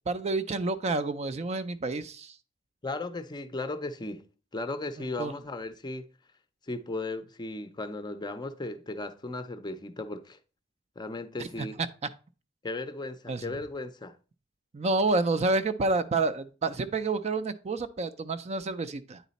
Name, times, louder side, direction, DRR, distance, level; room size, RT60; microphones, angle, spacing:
voice 1, 0.1-2.3 5.2-5.3 11.4-11.7 13.3-13.5 14.7-19.2, right 3 dB, 35° right, 0.4 m, -29 dB
voice 2, 2.8-4.3 4.5-6.1 6.7-10.4 11.0-11.8 12.6-14.2, left 2 dB, 20° left, 0.5 m, -36 dB
9.2 x 4.1 x 4.0 m
head